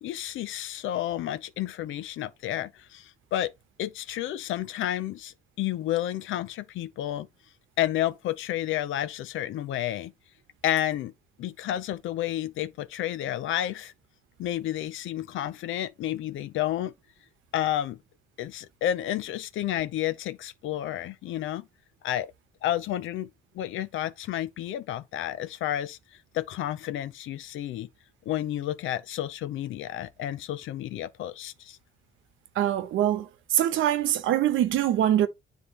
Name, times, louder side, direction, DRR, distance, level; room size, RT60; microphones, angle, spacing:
voice 1, 0.0-3.5 3.8-7.3 7.8-10.1 10.6-11.1 11.4-13.9 14.4-16.9 17.5-18.0 18.4-21.6 22.0-22.3 22.6-23.3 23.5-26.0 26.3-27.9 28.3-31.8, left 12 dB, 80° left, 0.6 m, -31 dB
voice 2, 32.6-35.3, right 11 dB, 80° right, 1.0 m, -24 dB
9.8 x 3.6 x 2.9 m
cardioid pair, 90°, 20 cm